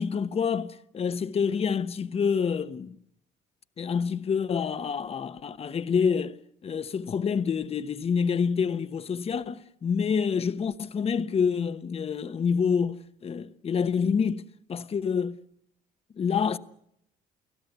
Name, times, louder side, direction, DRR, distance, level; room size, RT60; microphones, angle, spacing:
voice 1, 0.0-3.0 3.8-6.4 6.6-14.4 14.7-15.4 16.2-16.6, left 6 dB, 35° left, 1.1 m, -27 dB
30.0 x 17.5 x 8.2 m
cardioid pair, 110°, 17 cm